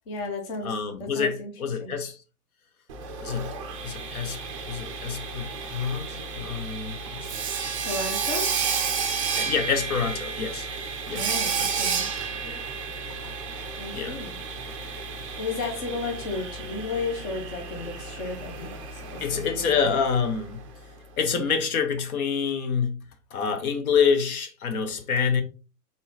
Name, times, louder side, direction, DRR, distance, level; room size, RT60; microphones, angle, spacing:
voice 1, 0.1-1.5 1.8-2.0 7.7-8.5 11.1-12.1 13.8-14.4 15.4-19.9, left 3 dB, 30° left, 0.8 m, -34 dB
voice 2, 0.6-2.2 3.2-3.5 3.8-4.4 4.7-7.3 9.3-10.7 11.0-12.0 12.4-12.7 13.9-14.2 19.2-20.6 21.2-23.1 23.3-25.4, left 6 dB, 60° left, 1.0 m, -27 dB
Sawing, 2.9-20.7, right 5 dB, 25° right, 0.4 m, -32 dB
4.0 x 3.8 x 2.7 m
hypercardioid pair, 155°, 48 cm